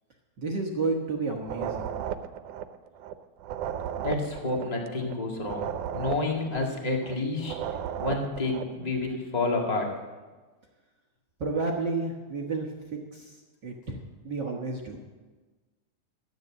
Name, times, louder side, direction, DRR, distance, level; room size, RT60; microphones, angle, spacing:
voice 1, 0.4-1.9 11.4-15.0, right 3 dB, 55° right, 0 dB, 1.3 m, -31 dB
sound 1, 1.4-8.8, right 9 dB, 90° right, 2.2 m, -35 dB
voice 2, 4.0-5.7 5.9-7.5 8.0-9.9, left 3 dB, 15° left, 0 dB, 1.5 m, -29 dB
13.0 x 9.3 x 7.4 m, 1.3 s
omnidirectional pair, 3.5 m